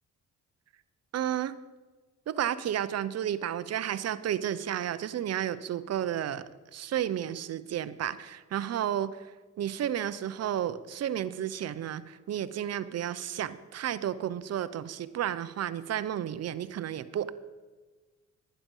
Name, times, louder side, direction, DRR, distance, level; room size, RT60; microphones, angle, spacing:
voice 1, 1.1-1.6 2.3-6.4 6.7-9.3 9.6-17.3, right 10 dB, 55° right, 14 dB, 0.8 m, -32 dB
11.5 x 10.5 x 5.5 m, 1.3 s
cardioid pair, 90°, 30 cm